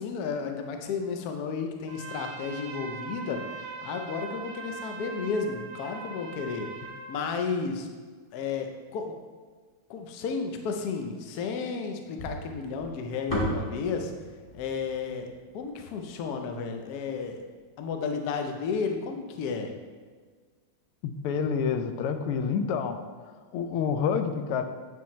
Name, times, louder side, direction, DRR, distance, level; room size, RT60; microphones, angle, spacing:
voice 1, 0.0-6.7 7.1-7.9 8.3-9.1 9.9-14.1 14.5-17.4 17.8-19.7, left 5 dB, 70° left, 4 dB, 0.9 m, -32 dB
Trumpet, 1.9-7.3, right 4 dB, 75° right, 1.0 m, -41 dB
sound 1, 12.2-16.5, equal, 15° left, 1.6 m, -35 dB
voice 2, 21.0-23.0 23.5-24.6, left 6 dB, 90° left, 8 dB, 1.5 m, -28 dB
9.2 x 4.5 x 3.1 m, 1.5 s
omnidirectional pair, 2.4 m